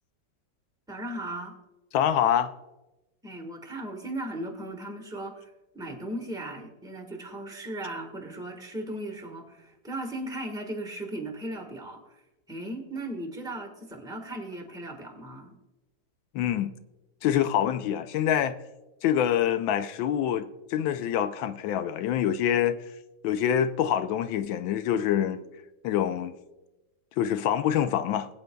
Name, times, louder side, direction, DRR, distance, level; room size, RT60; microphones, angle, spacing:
voice 1, 0.9-1.6 3.2-12.2 12.5-15.6, right 1 dB, ahead, 1.1 m, -37 dB
voice 2, 1.9-2.5 16.3-16.7 17.2-18.5 19.0-22.8 23.2-25.4 25.8-26.3 27.2-28.3, left 10 dB, 85° left, 1.3 m, -25 dB
20.5 x 8.0 x 2.2 m
omnidirectional pair, 2.1 m